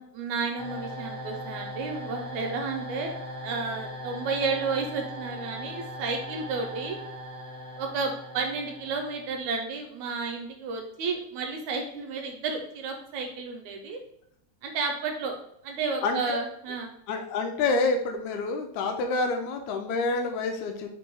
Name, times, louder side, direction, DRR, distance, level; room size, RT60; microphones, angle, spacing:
voice 1, 0.0-3.1 3.4-7.0 7.8-14.0 14.6-15.3 15.6-16.9, right 4 dB, 75° right, 3 dB, 1.9 m, -32 dB
sound 1, 0.6-9.5, equal, 45° left, 0.6 m, -39 dB
voice 2, 16.0-16.4 17.1-20.9, left 3 dB, 80° left, 4 dB, 1.8 m, -28 dB
5.2 x 2.3 x 4.5 m, 0.70 s
omnidirectional pair, 3.4 m